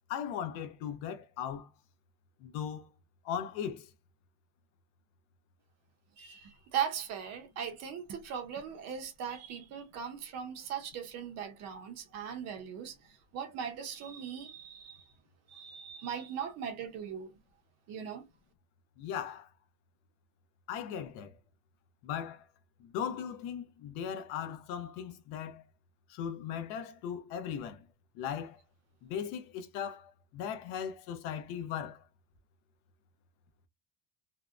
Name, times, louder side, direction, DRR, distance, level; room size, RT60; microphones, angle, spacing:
voice 1, 0.1-1.7 2.4-2.9 3.2-3.9 19.0-19.5 20.7-21.3 22.0-22.4 22.8-25.6 26.1-27.8 28.2-28.6 29.0-32.0, left 8 dB, 75° left, 0.6 m, -38 dB
voice 2, 6.2-12.9 13.3-15.1 15.5-17.3 17.9-18.2, right 8 dB, 40° right, 0.5 m, -39 dB
2.7 x 2.0 x 2.3 m
cardioid pair, 165°, 43 cm